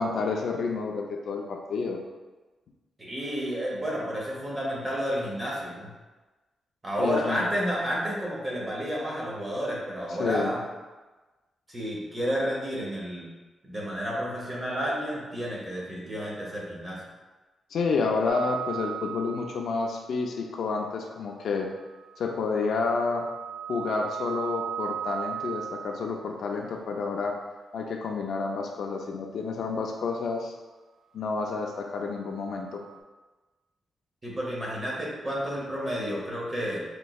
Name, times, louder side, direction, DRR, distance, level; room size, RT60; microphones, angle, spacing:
voice 1, 0.0-2.0 7.0-7.5 10.2-10.5 17.7-21.7 22.2-23.3 23.7-27.3 27.7-30.5 31.1-32.8, left 4 dB, 65° left, 1 dB, 0.4 m, -29 dB
voice 2, 3.0-5.9 6.8-10.6 11.7-13.3 13.6-17.0 34.2-36.8, equal, 20° right, -4 dB, 0.8 m, -31 dB
sound 1, 18.3-19.9 21.9-26.3 32.2-33.0, right 9 dB, 80° right, 0.4 m, -37 dB
4.3 x 3.0 x 2.3 m, 1.2 s
wide cardioid pair, 180°, 0 cm